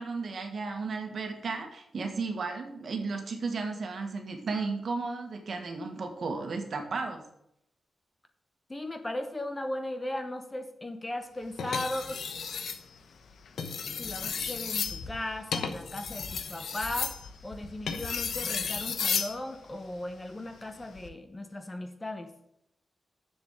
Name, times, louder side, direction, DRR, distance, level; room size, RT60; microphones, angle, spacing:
voice 1, 0.0-7.2, right 4 dB, 55° right, 4 dB, 1.6 m, -34 dB
voice 2, 8.7-12.2 13.9-22.3, left 1 dB, 15° left, 7 dB, 0.8 m, -37 dB
sound 1, 11.6-12.8 13.5-19.4 20.8-21.1, left 6 dB, 80° left, 0.9 m, -33 dB
7.2 x 7.1 x 7.4 m, 0.77 s
wide cardioid pair, 170°, 0 cm